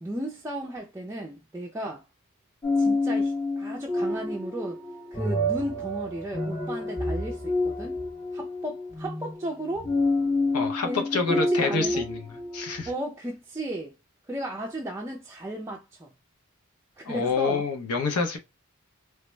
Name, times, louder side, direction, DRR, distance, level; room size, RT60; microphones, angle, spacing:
voice 1, 0.0-2.0 2.8-4.8 5.1-8.0 8.3-10.0 10.8-12.1 12.9-14.0 14.3-16.1 17.0-17.7, right 1 dB, 10° right, 0.3 m, -35 dB
sound 1, 2.6-12.9, left 2 dB, 10° left, 0.7 m, -28 dB
voice 2, 10.5-12.9 17.0-18.4, left 4 dB, 75° left, 0.6 m, -27 dB
3.2 x 2.1 x 3.1 m
head